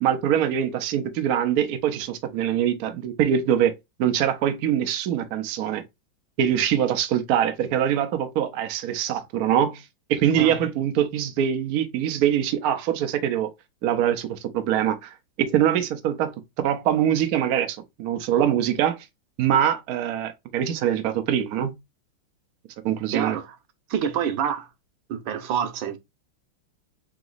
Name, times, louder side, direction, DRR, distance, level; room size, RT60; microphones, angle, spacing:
voice 1, 0.0-3.7 4.0-5.8 6.4-9.8 10.1-13.5 13.8-19.0 19.4-21.7 22.8-23.4, right 10 dB, 85° right, 0.8 m, -23 dB
voice 2, 23.1-23.5 23.9-24.7 25.1-26.0, right 8 dB, 70° right, 1.4 m, -27 dB
3.9 x 3.0 x 3.8 m
omnidirectional pair, 2.4 m